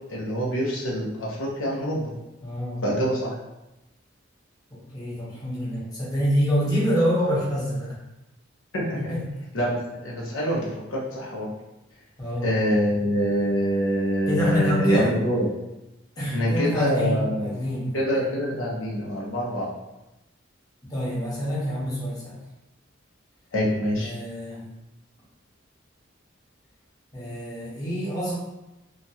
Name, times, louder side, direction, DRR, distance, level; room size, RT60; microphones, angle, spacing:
voice 1, 0.1-2.1 2.8-3.3 8.7-9.1 9.5-9.8 10.0-11.5 12.4-15.5 16.3-17.4 17.9-19.7 23.5-24.1, equal, 90° left, -4 dB, 0.8 m, -25 dB
voice 2, 2.4-2.8 4.7-8.0 8.9-9.3 12.2-12.5 14.3-15.2 16.2-18.2 20.8-22.4 23.9-24.6 27.1-28.4, equal, 20° left, -8 dB, 0.8 m, -26 dB
2.9 x 2.4 x 2.7 m, 0.95 s
head